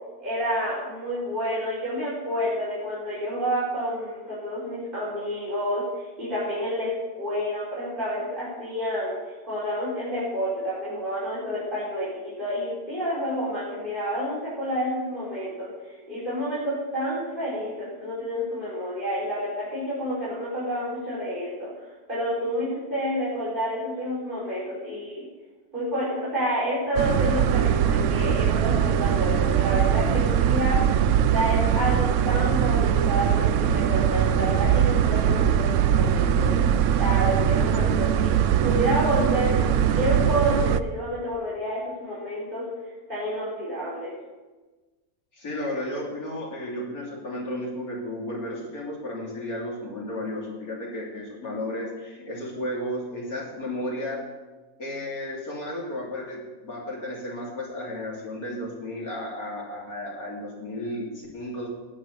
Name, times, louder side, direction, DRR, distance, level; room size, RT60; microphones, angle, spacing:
voice 1, 0.2-25.2 25.7-30.8 31.2-36.5 37.0-38.4 38.6-42.6 43.1-44.1, equal, 35° right, -10 dB, 5.0 m, -29 dB
sound 1, 26.9-40.8, right 9 dB, 70° right, 0.8 m, -21 dB
voice 2, 45.3-54.2 54.8-61.7, left 1 dB, 80° left, -3 dB, 3.8 m, -33 dB
19.5 x 6.6 x 6.8 m, 1.2 s
omnidirectional pair, 1.5 m